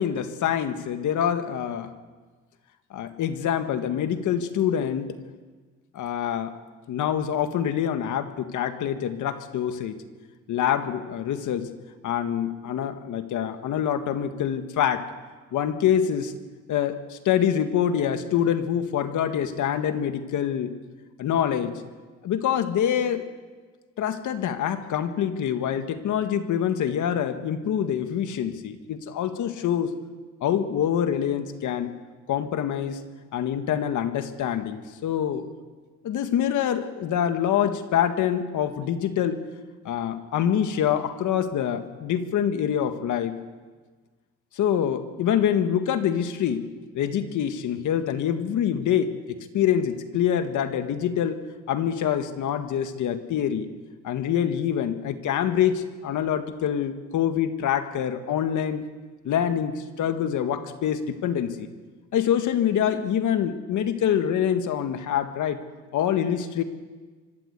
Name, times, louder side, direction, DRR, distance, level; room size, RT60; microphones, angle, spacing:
voice 1, 0.0-1.9 2.9-5.2 5.9-6.5 6.9-10.0 10.5-11.7 12.0-15.1 15.5-16.3 16.7-20.7 21.2-21.7 22.2-23.3 24.0-29.9 30.4-32.0 32.3-33.0 33.3-35.5 36.0-39.4 39.8-43.4 44.5-46.6 46.9-49.1 49.5-51.4 51.7-53.7 54.0-58.8 59.2-61.7 62.1-65.6 65.9-66.6, left 9 dB, 75° left, 8 dB, 1.8 m, -25 dB
25.0 x 13.0 x 8.3 m, 1.4 s
cardioid pair, 90°, 30 cm